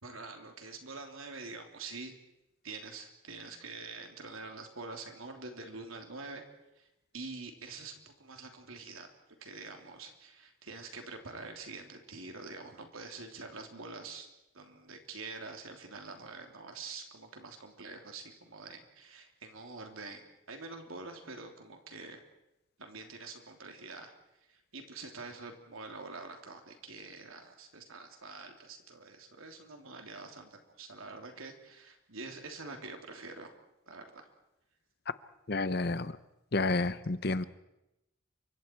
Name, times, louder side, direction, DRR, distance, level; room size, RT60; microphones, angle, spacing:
voice 1, 0.0-2.1 2.6-6.4 6.8-6.9 7.1-9.1 9.4-14.3 14.5-22.2 22.8-24.1 24.5-33.5 33.9-34.3, right 3 dB, 85° right, 3 dB, 3.3 m, -46 dB
voice 2, 35.5-36.2 36.5-37.4, left 3 dB, 50° left, 14 dB, 0.8 m, -30 dB
29.0 x 25.0 x 4.7 m, 0.92 s
head